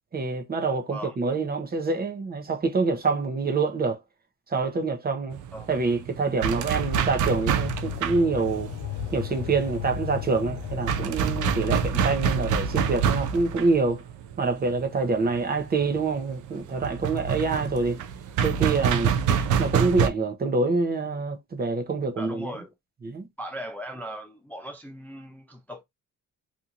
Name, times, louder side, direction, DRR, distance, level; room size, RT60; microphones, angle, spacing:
voice 1, 0.1-4.0 4.5-5.4 5.7-8.7 9.1-14.0 14.4-18.0 18.4-19.1 19.6-22.5 23.0-23.3, right 3 dB, 30° right, 0.7 m, -26 dB
Banging on wooden door, 5.3-20.1, right 7 dB, 75° right, 0.5 m, -27 dB
sound 1, 6.7-11.9, left 8 dB, 60° left, 0.5 m, -35 dB
voice 2, 22.2-22.7 23.4-25.8, equal, 5° left, 0.4 m, -38 dB
2.9 x 2.5 x 2.4 m
cardioid pair, 90°, 30 cm